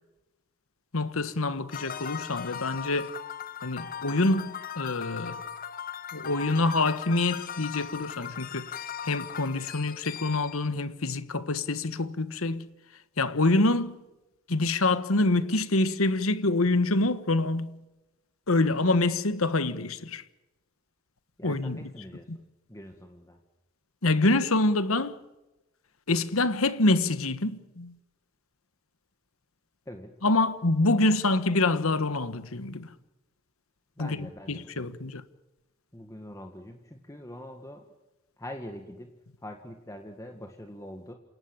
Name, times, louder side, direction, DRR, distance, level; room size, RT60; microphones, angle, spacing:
voice 1, 0.9-3.1 3.6-5.4 6.1-8.8 9.0-12.7 13.2-14.0 14.5-17.8 18.5-20.2 21.4-21.8 22.3-22.4 24.0-25.2 26.1-27.9 30.2-32.9 34.0-34.2 34.5-35.2, left 2 dB, 70° left, 1.4 m, -26 dB
sound 1, 1.7-10.7, left 8 dB, 40° left, 1.1 m, -39 dB
voice 2, 21.4-22.3 22.7-23.4 29.9-30.1 34.0-34.9 35.9-37.8 38.4-39.1 39.4-41.1, left 1 dB, 15° left, 1.8 m, -43 dB
28.5 x 17.5 x 8.8 m
head